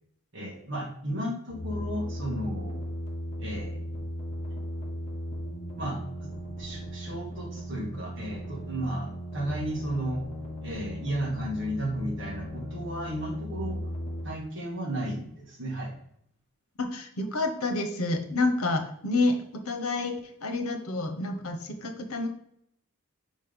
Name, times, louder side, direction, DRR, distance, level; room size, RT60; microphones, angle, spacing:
voice 1, 0.3-2.8 3.4-3.8 5.8-6.3 6.6-10.2 10.6-13.8 14.2-15.9, right 1 dB, 55° right, -2 dB, 2.3 m, -34 dB
sound 1, 1.5-14.2, equal, 30° left, 1.8 m, -37 dB
voice 2, 16.8-19.4 19.7-22.3, left 2 dB, 80° left, 6 dB, 1.1 m, -28 dB
5.6 x 5.2 x 5.3 m, 0.71 s
head